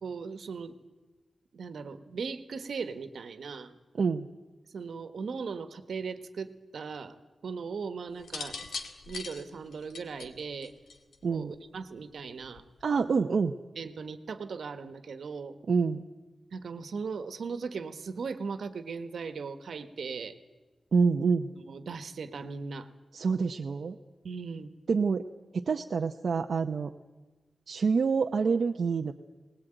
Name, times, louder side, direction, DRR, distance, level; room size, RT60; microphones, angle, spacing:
voice 1, 0.0-0.7 1.5-3.7 4.7-7.1 7.4-8.6 9.1-10.7 11.3-12.6 13.8-15.5 16.5-20.3 21.6-22.9 24.2-24.7, right 5 dB, 75° right, 9 dB, 1.5 m, -38 dB
sound 1, 8.2-11.3 12.4-12.8, left 4 dB, 85° left, 2.0 m, -40 dB
voice 2, 12.8-13.6 15.7-16.0 20.9-21.5 23.1-24.0 24.9-25.3 25.5-26.9 27.7-29.1, right 5 dB, 55° right, 3 dB, 0.8 m, -27 dB
20.5 x 19.5 x 9.1 m, 1.2 s
wide cardioid pair, 175°, 0 cm